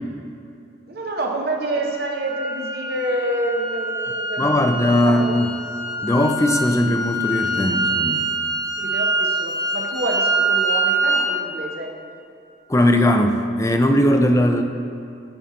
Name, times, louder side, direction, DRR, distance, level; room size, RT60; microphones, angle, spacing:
voice 1, 0.9-5.4 7.6-7.8 8.8-11.9, right 1 dB, 55° right, 1 dB, 0.9 m, -28 dB
sound 1, 1.6-11.3, right 2 dB, 20° right, 0.8 m, -25 dB
voice 2, 4.4-5.5 6.0-8.3 12.7-14.6, left 1 dB, 15° left, 6 dB, 0.4 m, -19 dB
14.0 x 5.2 x 2.9 m, 2.7 s
head